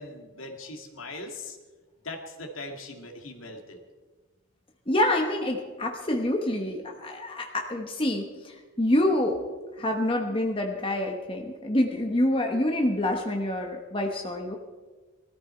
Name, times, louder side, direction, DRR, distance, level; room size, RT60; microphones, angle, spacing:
voice 1, 0.0-1.6 2.0-3.8, left 2 dB, 70° left, 3 dB, 2.2 m, -40 dB
voice 2, 4.9-9.4 9.8-14.6, left 1 dB, 25° left, 2 dB, 1.1 m, -27 dB
20.0 x 13.5 x 4.5 m, 1.3 s
head